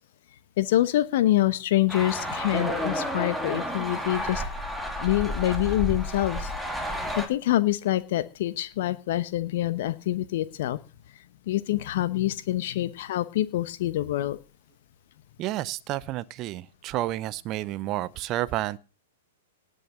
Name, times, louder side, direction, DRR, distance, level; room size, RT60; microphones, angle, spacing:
voice 1, 0.6-4.4 5.0-6.5 7.2-10.8 11.5-14.4, left 14 dB, 55° left, 1.0 m, -26 dB
sound 1, 1.9-7.3, equal, ahead, 2.7 m, -31 dB
voice 2, 15.4-18.8, right 15 dB, 35° right, 0.7 m, -30 dB
18.5 x 6.5 x 5.7 m
figure-of-eight pair, 105°, 0 cm